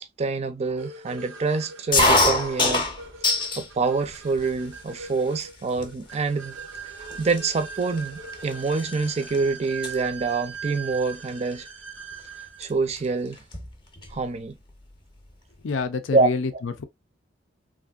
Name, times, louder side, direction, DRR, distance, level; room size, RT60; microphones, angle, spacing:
voice 1, 0.0-2.8 3.6-6.6 7.0-11.7 12.6-13.4 14.1-14.6 16.1-16.6, right 4 dB, 35° right, 0.4 m, -26 dB
sound 1, 0.8-12.7, right 5 dB, 80° right, 0.6 m, -40 dB
sound 2, 1.9-3.7 4.1-4.7 5.4-5.5 5.8-6.1 6.8-6.9 7.1-9.4 9.6-9.9 11.3-11.5 12.6-12.7 13.0-13.1 13.3-14.2, left 2 dB, 25° left, 0.7 m, -24 dB
voice 2, 15.6-16.8, left 4 dB, 90° left, 0.5 m, -27 dB
3.2 x 2.5 x 2.3 m
head